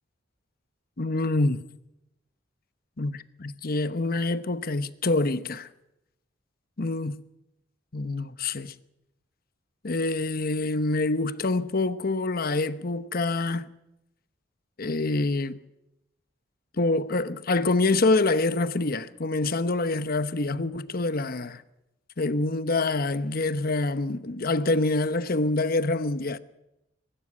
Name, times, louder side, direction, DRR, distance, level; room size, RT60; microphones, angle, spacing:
voice 1, 1.0-1.6 3.0-5.7 6.8-7.2 7.9-8.7 9.8-13.7 14.8-15.6 16.7-21.6 22.2-26.4, left 2 dB, 55° left, 1.0 m, -26 dB
22.5 x 12.5 x 9.9 m
head